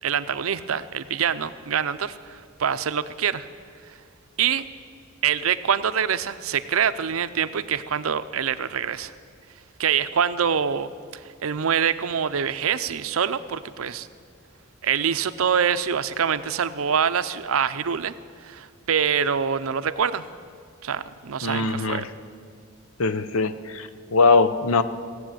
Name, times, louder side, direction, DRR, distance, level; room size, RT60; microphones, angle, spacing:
voice 1, 0.0-3.5 4.4-4.7 5.2-9.1 9.8-14.1 14.8-18.1 18.4-20.2 20.8-22.1, right 7 dB, 85° right, 13 dB, 0.6 m, -25 dB
voice 2, 21.4-22.1 23.0-24.8, left 3 dB, 85° left, 12 dB, 0.7 m, -21 dB
16.5 x 7.9 x 9.0 m, 2.3 s
head